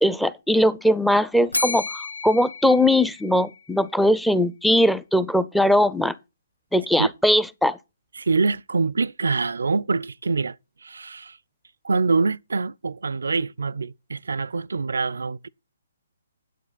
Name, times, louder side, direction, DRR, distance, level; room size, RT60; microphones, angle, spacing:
voice 1, 0.0-6.1 6.7-7.8, left 1 dB, ahead, 0.5 m, -20 dB
Bell, 1.5-3.7, left 3 dB, 85° left, 0.8 m, -31 dB
voice 2, 8.2-10.6 10.8-11.4 11.8-15.5, right 4 dB, 75° right, 0.4 m, -25 dB
9.3 x 8.2 x 4.0 m
figure-of-eight pair, 135°, 0 cm